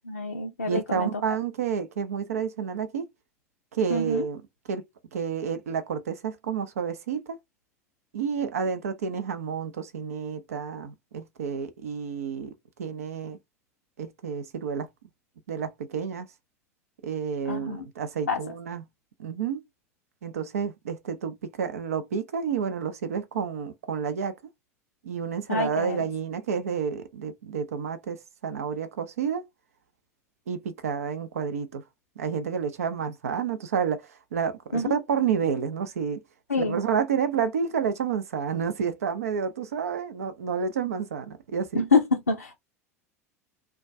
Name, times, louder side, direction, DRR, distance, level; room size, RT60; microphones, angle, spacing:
voice 1, 0.0-1.1 3.9-4.2 17.5-17.9 18.3-18.4 25.5-26.1 34.7-35.0 36.5-36.8 41.7-42.6, left 3 dB, 85° left, 0.4 m, -26 dB
voice 2, 0.6-3.1 3.7-4.4 4.7-4.8 5.1-7.4 8.1-12.5 12.8-13.4 14.0-14.9 15.5-16.3 17.0-18.9 19.2-19.6 20.2-24.3 25.0-29.4 30.5-31.8 32.2-36.2 36.7-41.8, right 7 dB, 75° right, 0.5 m, -30 dB
2.3 x 2.2 x 2.5 m
figure-of-eight pair, 75°, 8 cm